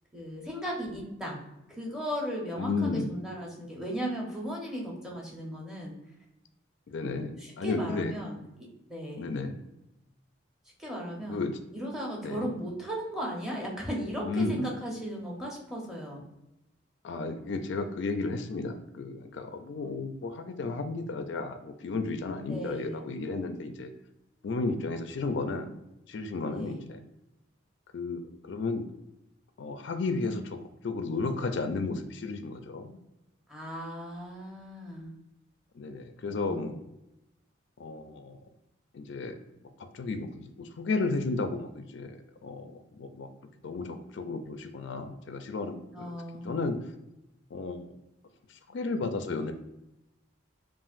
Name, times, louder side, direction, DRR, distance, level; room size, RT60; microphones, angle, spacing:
voice 1, 0.1-1.4 1.7-5.9 6.9-9.3 10.8-11.4 11.7-16.2 22.5-23.1 26.5-26.9 33.5-35.1 36.3-36.8 45.9-46.5, equal, 5° right, -2 dB, 0.8 m, -36 dB
voice 2, 2.6-3.1 6.9-7.3 7.6-8.1 9.2-9.6 11.3-11.6 12.2-12.5 14.2-14.7 17.0-23.9 24.4-25.7 26.1-27.0 27.9-28.9 29.6-33.0 35.8-36.8 37.8-38.4 38.9-39.4 39.9-43.3 43.6-46.1 46.4-46.8 47.5-48.0 48.5-49.5, left 3 dB, 60° left, 7 dB, 0.4 m, -33 dB
5.6 x 2.5 x 2.5 m, 0.92 s
head